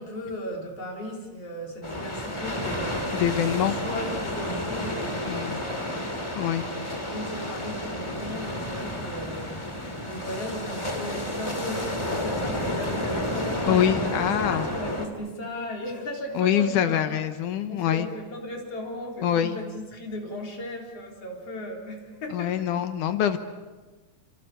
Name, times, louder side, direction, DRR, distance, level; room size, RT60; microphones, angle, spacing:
voice 1, 0.0-3.0 3.5-9.7 10.0-14.1 14.4-17.2 17.7-22.7, left 1 dB, 45° left, 0 dB, 4.8 m, -36 dB
sound 1, 1.8-15.1, left 1 dB, 10° left, 1.7 m, -31 dB
voice 2, 3.2-3.8 5.3-5.6 6.4-6.6 13.7-14.7 16.4-18.1 19.2-19.6 22.3-23.4, left 10 dB, 70° left, 9 dB, 2.3 m, -24 dB
28.0 x 25.0 x 6.8 m, 1.3 s
omnidirectional pair, 4.1 m